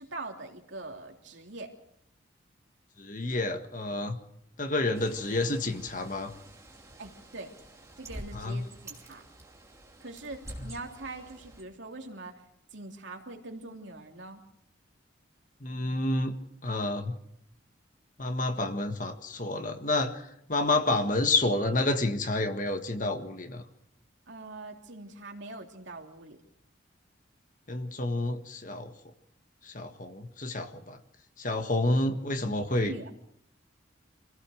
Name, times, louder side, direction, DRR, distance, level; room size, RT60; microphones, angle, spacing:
voice 1, 0.0-1.7 7.0-7.5 8.0-9.2 10.0-12.3 12.7-14.4 24.3-26.4 32.4-33.1, right 2 dB, 70° right, 2 dB, 3.1 m, -43 dB
voice 2, 3.0-4.2 4.6-6.3 8.3-8.7 10.6-10.7 15.6-16.4 16.6-17.1 18.2-23.6 27.7-28.9 29.6-31.0 31.4-32.9, left 2 dB, 40° left, 7 dB, 1.7 m, -29 dB
Bird, 4.9-11.6, right 1 dB, 15° right, 2.8 m, -48 dB
26.0 x 16.5 x 6.5 m, 0.75 s
head